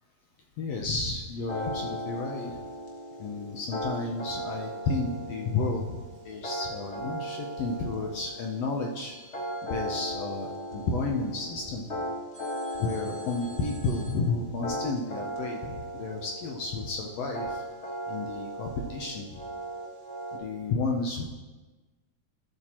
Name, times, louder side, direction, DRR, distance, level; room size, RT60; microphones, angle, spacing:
voice 1, 0.6-2.6 3.2-9.1 9.6-11.9 12.8-17.6 18.1-19.3 20.3-21.3, left 3 dB, 75° left, 1 dB, 1.5 m, -32 dB
sound 1, 1.5-20.4, equal, 40° left, 0.9 m, -37 dB
sound 2, 9.0-11.3 12.3-14.1, right 1 dB, 15° right, 2.4 m, -53 dB
13.5 x 7.8 x 2.9 m, 1.2 s
omnidirectional pair, 3.6 m